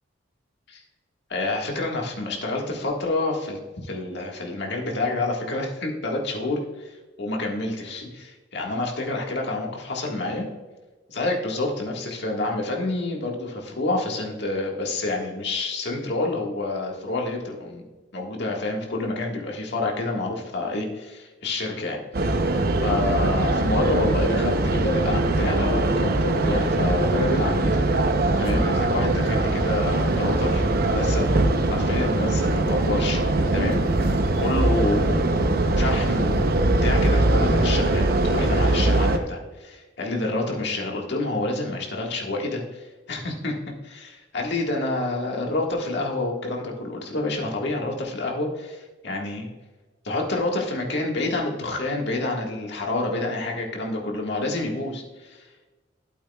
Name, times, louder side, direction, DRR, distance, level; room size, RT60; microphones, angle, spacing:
voice 1, 1.3-10.5 11.1-17.8 18.1-22.4 22.8-27.8 28.4-31.4 31.7-33.2 33.5-33.8 34.4-35.3 35.8-43.5 43.8-49.5 50.0-55.5, left 2 dB, 65° left, 0 dB, 1.7 m, -28 dB
sound 1, 22.1-39.2, right 2 dB, 55° right, 0.7 m, -22 dB
12.0 x 8.4 x 2.3 m, 1.2 s
head